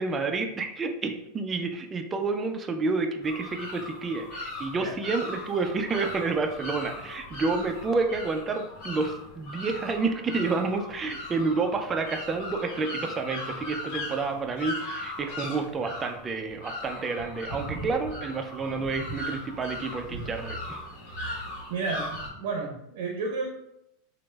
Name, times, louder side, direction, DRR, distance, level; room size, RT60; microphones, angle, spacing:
voice 1, 0.0-20.8, right 4 dB, 20° right, 5 dB, 0.4 m, -29 dB
sound 1, 3.2-22.3, left 1 dB, 55° left, 1.1 m, -38 dB
voice 2, 21.1-21.4 21.7-23.5, right 4 dB, 65° right, 1 dB, 0.6 m, -32 dB
3.0 x 2.0 x 3.3 m, 0.80 s
supercardioid pair, 140°, 0 cm